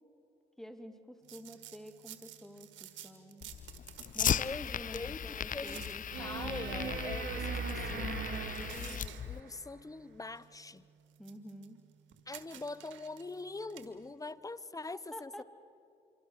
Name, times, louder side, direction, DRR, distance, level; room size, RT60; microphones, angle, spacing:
voice 1, 0.6-3.5 4.1-6.5 11.2-11.8 15.1-15.4, equal, ahead, 7 dB, 2.6 m, -49 dB
sound 1, 1.2-14.1, right 11 dB, 90° right, 1.6 m, -54 dB
Fire, 3.4-9.4, left 8 dB, 45° left, 0.6 m, -37 dB
voice 2, 4.2-5.8 6.2-8.1 8.7-10.9 12.3-15.4, left 3 dB, 20° left, 17 dB, 0.9 m, -43 dB
sound 2, 6.1-9.5 12.1-12.2, right 5 dB, 70° right, 2.4 m, -39 dB
26.0 x 24.5 x 6.6 m, 2.7 s
supercardioid pair, 60°, 19 cm